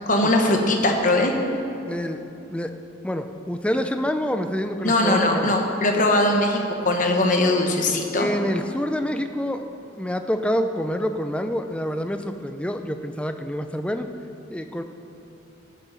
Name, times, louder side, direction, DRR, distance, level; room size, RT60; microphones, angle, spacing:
voice 1, 0.1-1.3 4.8-8.3, left 1 dB, 40° left, 2 dB, 1.2 m, -20 dB
voice 2, 1.8-2.2 2.5-2.7 3.0-5.5 8.1-9.6 10.0-14.1 14.5-14.8, equal, 5° left, 7 dB, 0.4 m, -27 dB
14.0 x 6.9 x 5.6 m, 2.9 s
head